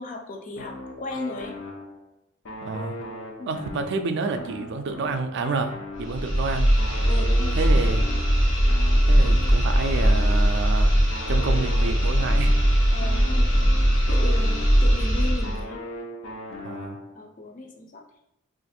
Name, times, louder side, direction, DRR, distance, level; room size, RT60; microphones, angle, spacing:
voice 1, 0.0-1.6 3.4-3.6 7.1-8.2 12.9-13.5 14.1-15.8 17.1-18.0, left 2 dB, 40° left, 2 dB, 0.5 m, -36 dB
sound 1, 0.6-2.1 2.4-6.4 6.8-10.7 11.1-15.0 15.4-17.3, left 2 dB, 85° left, 0.6 m, -39 dB
voice 2, 2.6-3.1 3.5-6.7 7.6-8.0 9.1-11.0 11.3-12.6 16.6-17.0, right 3 dB, 60° right, 7 dB, 0.3 m, -29 dB
sound 2, 6.0-15.6, equal, 65° left, 1.2 m, -20 dB
2.5 x 2.5 x 4.1 m, 0.83 s
head